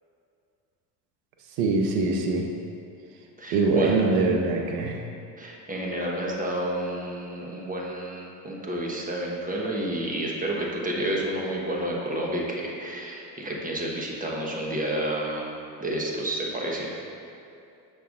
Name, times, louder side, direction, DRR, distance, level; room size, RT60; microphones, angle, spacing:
voice 1, 1.6-2.4 3.5-5.0, right 3 dB, 80° right, 1 dB, 0.9 m, -23 dB
voice 2, 3.4-4.0 5.4-15.4 15.8-16.9, right 1 dB, 20° right, -2 dB, 1.2 m, -30 dB
6.6 x 6.4 x 2.5 m, 2.6 s
supercardioid pair, 70°, 47 cm